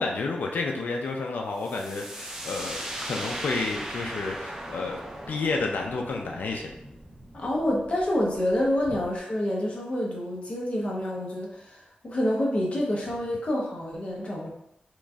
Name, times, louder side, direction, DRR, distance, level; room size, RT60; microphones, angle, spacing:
voice 1, 0.0-5.0 5.3-6.7, left 3 dB, 85° left, 1 dB, 0.4 m, -30 dB
sound 1, 1.6-9.2, right 1 dB, 15° right, 0.5 m, -38 dB
voice 2, 7.3-14.5, left 1 dB, 40° left, -3 dB, 0.7 m, -28 dB
3.0 x 2.5 x 2.3 m, 0.80 s
wide cardioid pair, 100°, 3 cm